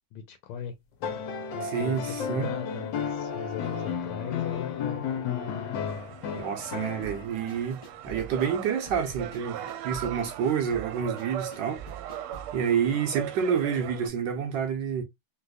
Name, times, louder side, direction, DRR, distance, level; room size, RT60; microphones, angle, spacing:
voice 1, 0.1-0.7 1.5-5.5, left 8 dB, 85° left, 1.5 m, -38 dB
sound 1, 1.0-7.5 8.9-9.0, left 7 dB, 65° left, 1.3 m, -33 dB
voice 2, 1.6-2.5 6.3-12.2 12.5-15.0, right 7 dB, 70° right, 1.1 m, -29 dB
sound 2, 5.9-14.1, right 11 dB, 85° right, 1.5 m, -39 dB
sound 3, 7.0-12.6, right 5 dB, 30° left, 0.5 m, -44 dB
3.3 x 2.9 x 2.3 m
omnidirectional pair, 2.4 m